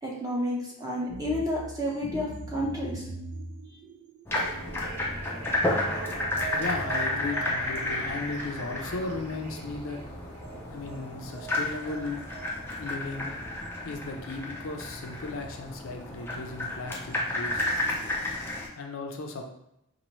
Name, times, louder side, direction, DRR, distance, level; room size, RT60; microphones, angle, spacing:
voice 1, 0.0-3.1, left 1 dB, 15° right, -4 dB, 0.8 m, -30 dB
sound 1, 1.1-12.9, right 4 dB, 75° right, 0.6 m, -42 dB
sound 2, 4.3-18.7, left 1 dB, 10° left, 0.4 m, -32 dB
voice 2, 6.5-10.0 10.7-12.2 12.8-13.3 13.8-17.6 18.8-19.4, left 3 dB, 65° left, 3 dB, 0.4 m, -36 dB
4.1 x 2.6 x 3.0 m, 0.81 s
head